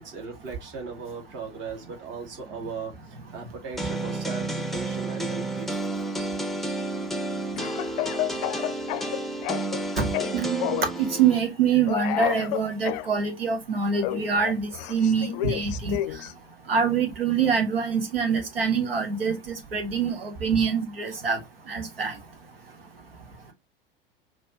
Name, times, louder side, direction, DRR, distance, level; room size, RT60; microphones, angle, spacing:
voice 1, 0.0-5.9, right 5 dB, 40° right, 2.1 m, -38 dB
sound 1, 3.8-11.4, right 2 dB, ahead, 0.7 m, -31 dB
Speech / Cough, 7.6-9.8 10.1-11.0 11.9-13.1 14.0-16.3, left 15 dB, 45° left, 0.5 m, -30 dB
voice 2, 10.3-16.0 16.7-19.4 19.7-21.4 21.7-22.1, right 6 dB, 75° right, 1.5 m, -25 dB
5.3 x 3.1 x 2.9 m
figure-of-eight pair, 80°, 29 cm